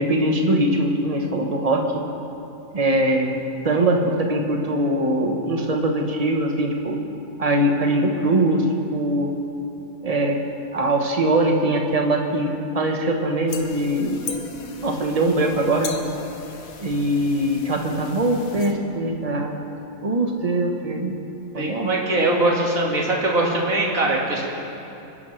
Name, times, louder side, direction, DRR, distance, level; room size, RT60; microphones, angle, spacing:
voice 1, 0.0-1.8 2.7-3.4 3.6-7.0 7.4-8.6 8.9-9.3 10.0-10.4 10.7-12.5 12.7-14.2 14.8-15.9 16.8-19.5 20.0-21.1 21.5-21.9, right 1 dB, 25° right, 2 dB, 1.2 m, -22 dB
sound 1, 13.5-18.7, left 5 dB, 75° left, 1.5 m, -38 dB
voice 2, 21.6-24.5, right 2 dB, 70° right, -3 dB, 2.6 m, -21 dB
28.0 x 10.5 x 3.3 m, 2.9 s
omnidirectional pair, 1.5 m